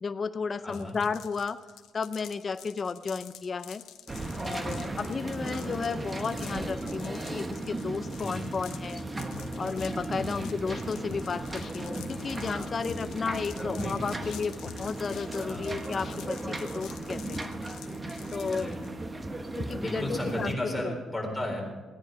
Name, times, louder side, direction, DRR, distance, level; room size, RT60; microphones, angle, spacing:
voice 1, 0.0-1.6 1.9-3.8 4.4-9.0 9.6-17.5 18.3-18.7 19.6-20.9, left 5 dB, 40° left, 11 dB, 0.6 m, -33 dB
voice 2, 0.6-1.0 8.2-8.5 10.1-10.6 12.8-13.2 13.6-14.2 15.5-15.7 18.4-18.8 19.8-21.8, left 1 dB, 5° left, -2 dB, 4.3 m, -35 dB
sound 1, 0.7-18.9, left 11 dB, 85° left, 0.9 m, -49 dB
sound 2, 4.1-20.6, right 2 dB, 25° right, 1.2 m, -36 dB
sound 3, 9.3-16.4, left 5 dB, 55° left, 1.3 m, -44 dB
16.0 x 10.0 x 5.2 m, 1.3 s
cardioid pair, 90°, 0 cm